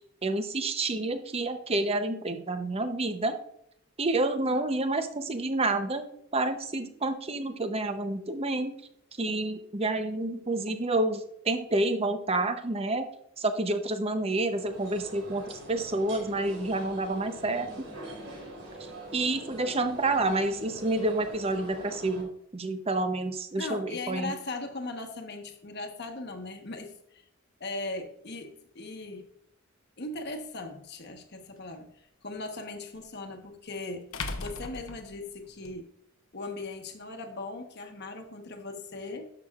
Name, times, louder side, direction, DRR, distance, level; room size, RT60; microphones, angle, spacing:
voice 1, 0.2-3.3 4.0-6.0 6.3-8.7 9.2-13.1 13.4-17.7 19.1-24.3, right 2 dB, 30° right, 8 dB, 0.7 m, -29 dB
sound 1, 14.4-22.2, right 1 dB, 70° right, 3.5 m, -44 dB
voice 2, 23.6-27.2 27.6-29.3 30.0-31.9 32.2-34.1 34.4-35.9 36.3-39.3, left 2 dB, 50° left, 5 dB, 1.1 m, -38 dB
sound 2, 30.3-30.4 33.0-33.1 34.1-35.7, left 3 dB, 75° left, 0.9 m, -37 dB
11.0 x 7.0 x 2.4 m, 0.74 s
head